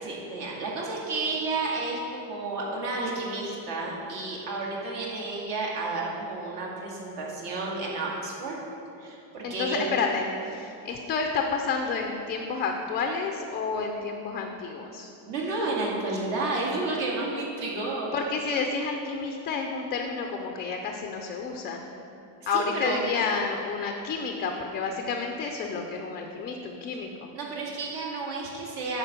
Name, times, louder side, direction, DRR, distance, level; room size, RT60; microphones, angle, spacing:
voice 1, 0.0-8.6 9.0-9.8 15.3-18.1 22.5-23.0 27.3-29.0, right 3 dB, 60° right, -3 dB, 2.2 m, -31 dB
voice 2, 9.4-15.1 18.1-21.8 22.5-27.3, left 4 dB, 25° left, 3 dB, 0.3 m, -30 dB
9.9 x 4.4 x 6.7 m, 2.8 s
cardioid pair, 155°, 45 cm